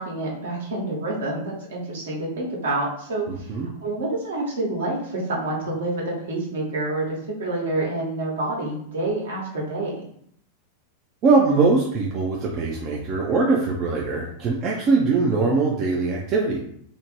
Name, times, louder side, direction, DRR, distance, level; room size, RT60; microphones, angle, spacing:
voice 1, 0.0-3.5 3.8-10.0, right 2 dB, 65° right, -4 dB, 0.9 m, -28 dB
voice 2, 3.3-3.7 11.2-16.6, right 3 dB, 35° right, -2 dB, 0.4 m, -21 dB
2.5 x 2.0 x 3.0 m, 0.67 s
figure-of-eight pair, 90°, 0 cm